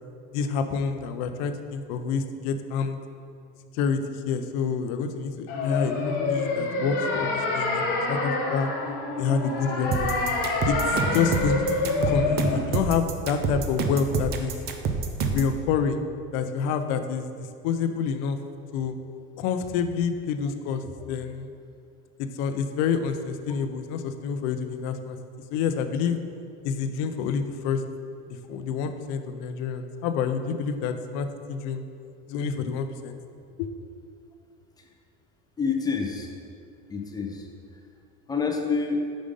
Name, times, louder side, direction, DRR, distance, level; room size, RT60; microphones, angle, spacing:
voice 1, 0.3-3.0 3.7-4.0 4.2-8.7 9.2-10.1 10.6-11.6 12.1-14.6 15.3-16.0 16.3-18.4 18.7-18.9 19.4-20.8 21.1-21.5 22.2-25.2 25.5-26.2 26.6-27.8 28.3-31.8 32.3-33.2 33.6-33.7, left 6 dB, 65° left, 8 dB, 0.6 m, -28 dB
sound 1, 5.5-12.6, left 3 dB, 50° left, 1.0 m, -27 dB
sound 2, 9.9-15.6, right 5 dB, 35° right, 0.5 m, -27 dB
voice 2, 35.6-36.3 36.9-37.8 38.3-39.0, left 5 dB, 15° left, 1 dB, 0.6 m, -28 dB
5.1 x 5.0 x 5.3 m, 2.5 s
cardioid pair, 150°, 29 cm